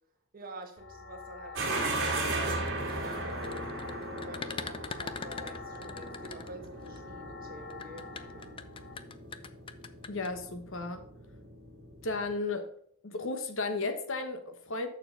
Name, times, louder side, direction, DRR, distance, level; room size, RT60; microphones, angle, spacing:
voice 1, 0.3-3.7 4.2-8.5, right 1 dB, 40° right, 1.4 m, -48 dB
sound 1, 0.8-8.9, left 4 dB, 85° left, 2.0 m, -48 dB
sound 2, 1.6-12.3, right 2 dB, 55° right, 2.1 m, -37 dB
sound 3, 2.3-7.0 7.7-10.3, left 5 dB, 25° left, 0.3 m, -42 dB
voice 2, 10.1-11.1 12.0-12.7 13.0-14.9, left 3 dB, 60° left, 1.0 m, -34 dB
6.9 x 6.5 x 5.5 m
head